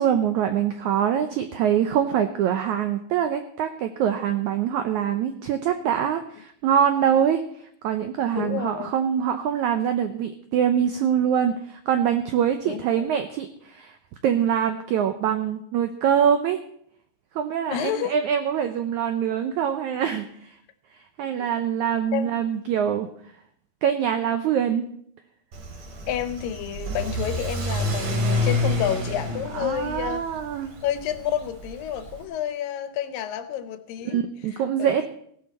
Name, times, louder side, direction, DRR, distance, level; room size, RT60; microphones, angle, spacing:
voice 1, 0.0-14.0 14.2-16.6 17.3-20.6 20.9-23.1 23.8-24.8 29.5-30.7 34.0-35.1, right 9 dB, 85° right, 1.7 m, -24 dB
voice 2, 8.4-8.9 12.7-13.1 17.7-18.2 21.4-21.5 22.1-22.4 26.1-30.3 30.8-34.2 34.8-35.1, left 10 dB, 75° left, 2.3 m, -29 dB
Car / Accelerating revving vroom, 25.5-32.2, left 1 dB, 55° right, 3.7 m, -29 dB
16.5 x 11.5 x 4.2 m
omnidirectional pair, 4.3 m